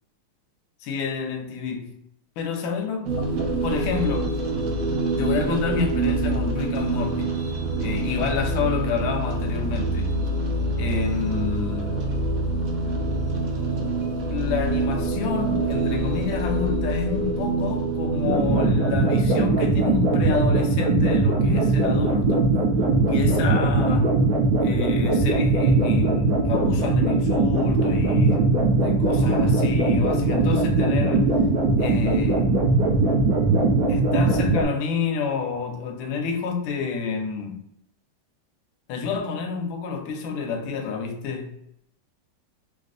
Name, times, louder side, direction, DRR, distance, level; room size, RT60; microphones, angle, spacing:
voice 1, 0.8-2.0 2.4-4.3 5.2-7.3 7.8-10.2 10.8-12.0 14.3-22.5 23.1-24.2 24.6-31.4 31.8-32.5 33.2-33.4 33.9-37.6 38.9-41.6, left 5 dB, 75° left, 1.3 m, -29 dB
sound 1, 3.0-18.7, right 2 dB, 85° right, 0.7 m, -26 dB
sound 2, 18.2-34.6, right 3 dB, 60° right, 1.1 m, -20 dB
4.0 x 2.2 x 2.5 m
omnidirectional pair, 2.3 m